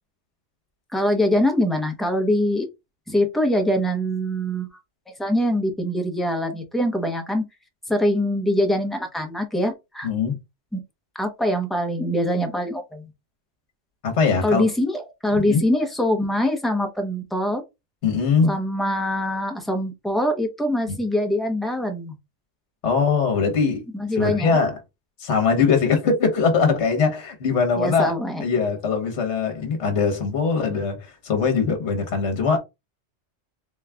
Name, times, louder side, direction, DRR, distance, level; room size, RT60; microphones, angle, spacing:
voice 1, 0.9-2.7 3.1-4.8 5.2-7.4 7.9-10.1 10.7-10.8 11.1-13.1 14.4-17.6 18.4-22.1 23.9-24.6 27.8-28.4, left 1 dB, ahead, 0.6 m, -23 dB
voice 2, 10.0-10.4 14.0-14.7 15.3-15.6 18.0-18.6 20.9-21.0 22.8-23.8 24.1-24.8 25.2-28.2 28.4-32.6, left 5 dB, 60° left, 1.3 m, -21 dB
4.0 x 2.3 x 3.3 m
omnidirectional pair, 1.4 m